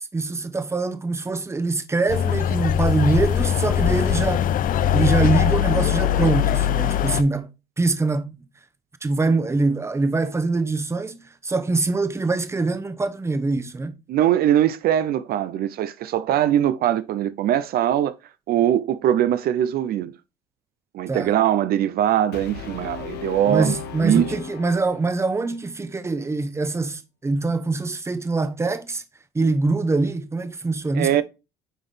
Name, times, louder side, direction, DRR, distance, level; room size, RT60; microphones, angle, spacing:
voice 1, 0.0-4.5 4.9-7.5 7.8-8.3 9.0-13.9 21.1-21.3 23.5-29.0 29.3-31.2, right 3 dB, 15° right, 0.8 m, -24 dB
sound 1, 2.1-7.2, left 10 dB, 55° left, 0.5 m, -21 dB
voice 2, 14.1-18.1 18.5-20.1 20.9-23.7 24.0-24.2 30.9-31.2, right 11 dB, 65° right, 0.5 m, -21 dB
Brass instrument, 22.3-25.4, left 6 dB, 80° left, 1.2 m, -36 dB
9.2 x 3.9 x 3.2 m
cardioid pair, 110°, 17 cm